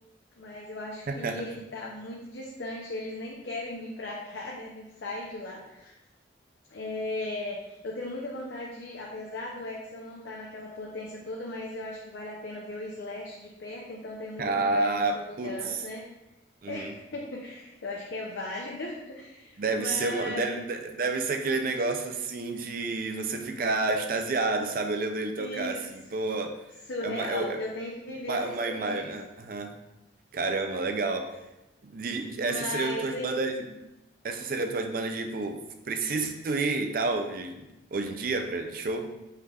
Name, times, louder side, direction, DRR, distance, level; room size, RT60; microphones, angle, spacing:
voice 1, 0.4-5.9 6.7-16.0 16.7-20.7 25.4-25.8 26.9-29.1 32.4-33.3, left 2 dB, 70° left, -3 dB, 0.6 m, -37 dB
voice 2, 1.1-1.4 14.4-15.8 16.6-16.9 19.6-26.6 27.0-27.6 28.3-29.8 30.3-31.3 31.8-33.8 34.2-39.1, right 3 dB, 50° right, 5 dB, 0.4 m, -30 dB
5.6 x 3.3 x 2.3 m, 0.95 s
head